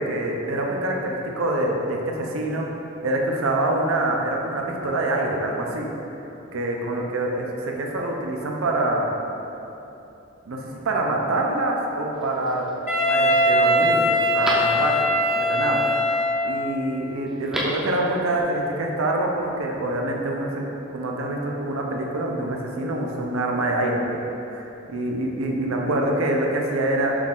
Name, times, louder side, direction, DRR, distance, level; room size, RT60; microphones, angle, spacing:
voice 1, 0.0-2.7 3.0-5.9 6.5-9.1 10.5-12.7 13.1-15.9 16.4-24.2 24.5-27.1, right 1 dB, 75° right, 0 dB, 0.6 m, -25 dB
Telephone, 12.1-12.7 13.2-13.3 13.7-15.2 17.3-17.9 18.2-18.3, equal, 5° right, 0.5 m, -31 dB
Wind instrument woodwind instrument, 12.9-16.7, left 1 dB, 35° left, 0.7 m, -21 dB
6.0 x 2.4 x 3.6 m, 2.9 s
head